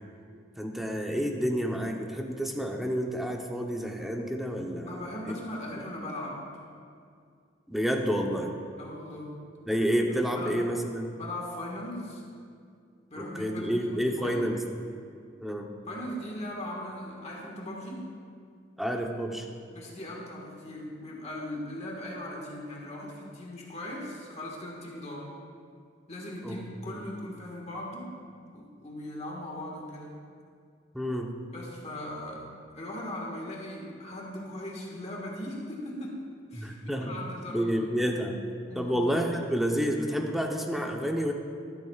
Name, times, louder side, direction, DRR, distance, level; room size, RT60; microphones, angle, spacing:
voice 1, 0.6-5.1 7.7-8.5 9.7-11.1 13.2-14.6 15.4-15.7 18.8-19.5 26.4-26.6 26.9-27.0 30.9-31.3 36.5-37.2 37.5-38.4 38.7-41.3, equal, ahead, 1 dB, 0.8 m, -29 dB
voice 2, 4.9-6.4 8.8-9.3 10.2-10.6 11.2-12.2 13.1-14.4 15.9-18.0 19.7-25.3 26.1-28.1 28.5-30.2 31.5-36.2 36.5-37.8 38.7-39.0, left 1 dB, 35° left, -2 dB, 1.6 m, -39 dB
13.0 x 12.5 x 2.4 m, 2.3 s
head